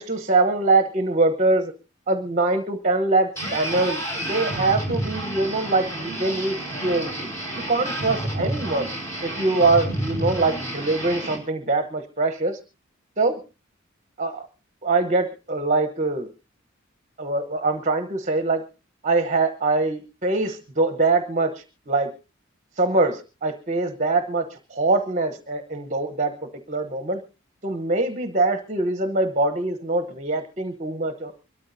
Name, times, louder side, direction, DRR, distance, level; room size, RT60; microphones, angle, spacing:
voice 1, 0.0-1.7 2.1-4.0 4.3-6.6 6.8-7.3 7.7-8.9 9.2-12.6 13.2-13.4 14.2-14.5 14.8-16.3 17.2-18.6 19.0-22.1 22.8-26.3 26.7-27.2 27.6-31.3, right 3 dB, 40° right, 8 dB, 1.0 m, -23 dB
sound 1, 3.4-11.4, right 1 dB, 15° left, 5.3 m, -30 dB
24.5 x 13.0 x 2.7 m, 0.30 s
head